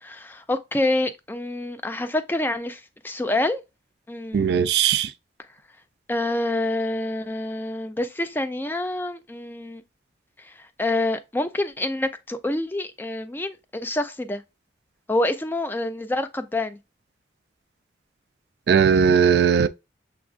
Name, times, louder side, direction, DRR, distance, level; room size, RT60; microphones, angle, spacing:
voice 1, 0.0-3.6 4.1-4.7 6.1-9.8 10.4-14.4 15.1-16.8, left 1 dB, 10° left, 0.3 m, -27 dB
voice 2, 4.3-5.1 18.7-19.7, right 7 dB, 65° right, 0.3 m, -18 dB
6.9 x 2.4 x 2.4 m
head